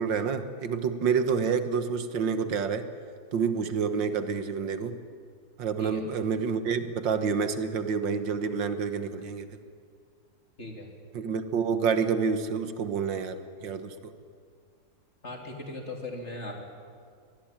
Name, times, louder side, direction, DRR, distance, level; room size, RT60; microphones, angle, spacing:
voice 1, 0.0-2.9 3.3-5.0 5.6-9.5 11.1-14.1, right 6 dB, 80° right, 9 dB, 2.0 m, -28 dB
voice 2, 10.6-10.9 15.2-16.7, left 2 dB, 35° left, 2 dB, 3.3 m, -38 dB
24.5 x 20.0 x 8.9 m, 2.1 s
omnidirectional pair, 2.0 m